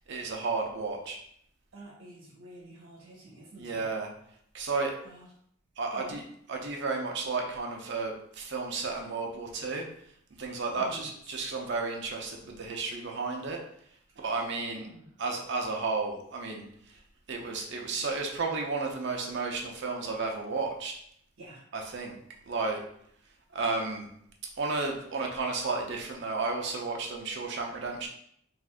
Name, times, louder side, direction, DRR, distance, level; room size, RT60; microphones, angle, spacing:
voice 1, 0.1-1.2 3.6-4.1 4.5-4.9 5.8-6.2 6.5-9.9 10.4-13.6 14.2-14.9 15.2-16.7 17.3-20.9 21.7-22.2 22.5-22.8 23.5-24.1 24.6-28.1, right 3 dB, 60° right, 1 dB, 0.6 m, -32 dB
voice 2, 1.7-3.9 5.0-5.3 5.9-6.2 10.4-11.4 14.1-15.2 21.4-21.6, right 2 dB, 90° right, -5 dB, 1.0 m, -49 dB
2.6 x 2.4 x 3.4 m, 0.68 s
head